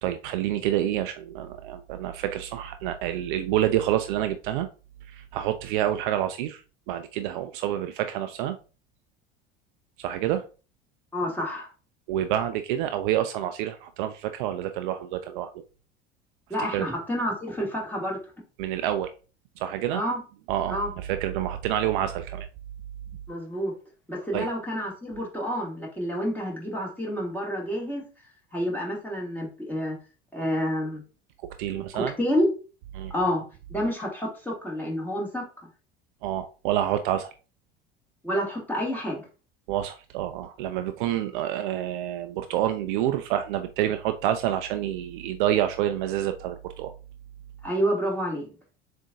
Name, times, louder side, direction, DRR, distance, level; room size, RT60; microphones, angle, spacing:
voice 1, 0.0-4.7 5.1-6.6 6.9-8.6 10.0-10.5 12.1-15.5 16.7-16.9 18.6-19.1 19.6-20.0 20.5-22.5 24.3-24.5 31.6-32.1 32.9-33.1 36.2-37.3 39.7-46.9, right 12 dB, 55° right, 9 dB, 0.5 m, -28 dB
voice 2, 11.1-11.7 16.5-18.2 19.9-20.2 20.7-20.9 23.3-23.7 24.1-28.1 28.5-30.0 30.3-31.0 31.7-32.5 33.1-33.4 33.7-35.5 38.2-39.2 47.6-48.5, equal, 5° left, -2 dB, 1.9 m, -29 dB
7.1 x 2.6 x 2.4 m, 0.34 s
figure-of-eight pair, 65°, 31 cm